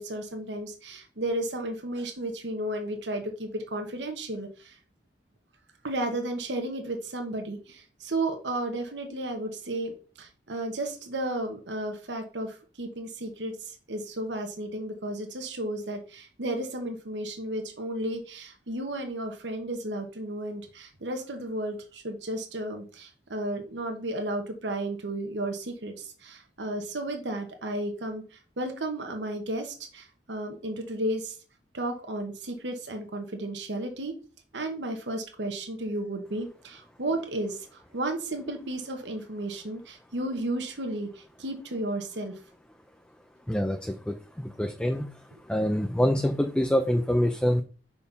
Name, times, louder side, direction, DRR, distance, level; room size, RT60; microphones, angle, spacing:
voice 1, 0.0-4.8 5.8-31.4 31.7-34.1 34.5-42.3 45.3-45.4, right 1 dB, 75° right, 4 dB, 1.1 m, -33 dB
voice 2, 43.5-45.1 45.5-47.6, equal, 5° left, 6 dB, 0.4 m, -26 dB
5.5 x 4.4 x 5.3 m, 0.38 s
head